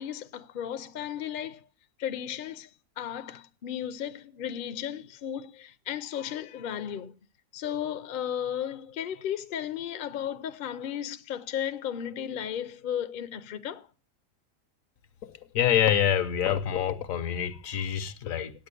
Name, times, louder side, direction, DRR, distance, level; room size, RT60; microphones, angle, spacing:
voice 1, 0.0-1.7 2.0-2.7 3.0-7.1 7.5-13.9, left 9 dB, 50° left, 0.7 m, -34 dB
voice 2, 15.2-18.5, left 10 dB, 70° left, 1.2 m, -26 dB
9.0 x 7.7 x 8.2 m
omnidirectional pair, 1.5 m